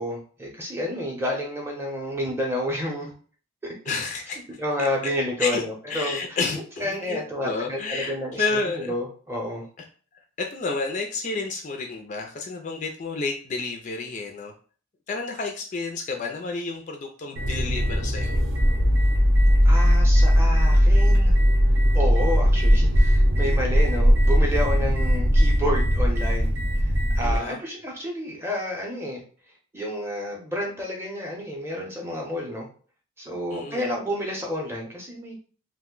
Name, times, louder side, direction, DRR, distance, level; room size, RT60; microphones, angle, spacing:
voice 1, 0.0-3.1 3.6-3.9 4.6-6.4 6.8-9.7 19.6-21.4 21.9-29.2 29.7-32.7 33.2-35.4, left 1 dB, 10° right, -1 dB, 0.6 m, -30 dB
voice 2, 3.9-4.4 4.8-4.9 5.4-8.9 10.4-14.5 15.1-18.4 27.2-27.6 33.5-33.9, left 3 dB, 35° left, 3 dB, 0.3 m, -30 dB
sound 1, 17.4-27.4, equal, 60° right, 0.7 m, -19 dB
2.5 x 2.1 x 3.6 m, 0.41 s
head